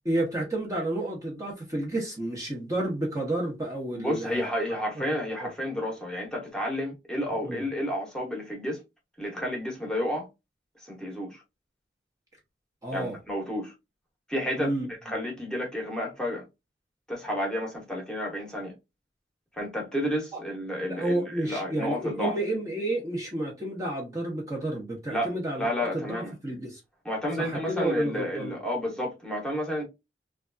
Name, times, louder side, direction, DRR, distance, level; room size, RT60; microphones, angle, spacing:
voice 1, 0.0-4.5 5.4-5.5 7.5-7.6 12.8-13.2 14.6-14.9 20.8-26.8 27.4-28.5, right 1 dB, 20° right, 0.7 m, -31 dB
voice 2, 3.9-8.8 9.2-10.3 10.9-11.4 12.9-13.7 14.3-16.4 17.1-18.7 19.5-22.3 25.1-25.3 25.6-26.3 27.0-29.8, equal, 5° left, 1.0 m, -31 dB
3.2 x 2.3 x 2.4 m
head